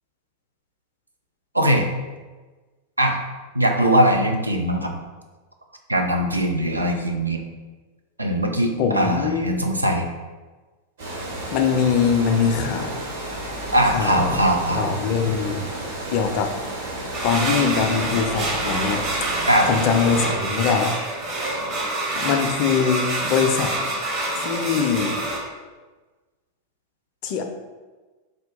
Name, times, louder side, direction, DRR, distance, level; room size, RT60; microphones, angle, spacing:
voice 1, 1.5-1.9 3.0-3.2 3.5-4.9 5.9-7.4 8.2-10.1 13.7-14.9 19.5-19.7, right 1 dB, 85° right, 2 dB, 0.4 m, -20 dB
voice 2, 8.8-9.4 11.5-13.0 13.9-14.4 14.7-15.7 16.1-16.5 17.2-19.0 19.6-20.9 22.2-23.7 24.4-25.2 27.2-27.4, left 6 dB, 45° left, 5 dB, 0.4 m, -22 dB
Water, 11.0-20.2, right 1 dB, 70° right, 1.3 m, -32 dB
sound 1, 17.1-25.4, right 2 dB, 35° right, 0.7 m, -27 dB
3.6 x 2.2 x 3.7 m, 1.3 s
figure-of-eight pair, 90°, 0 cm